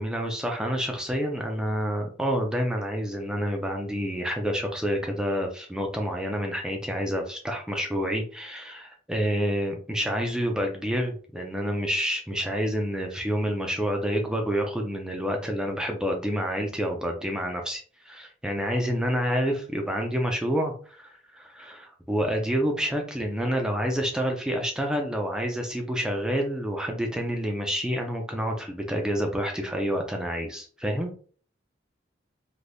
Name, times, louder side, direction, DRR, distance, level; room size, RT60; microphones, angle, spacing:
voice 1, 0.0-31.2, equal, 5° right, 2 dB, 0.5 m, -28 dB
3.4 x 2.7 x 2.6 m, 0.42 s
head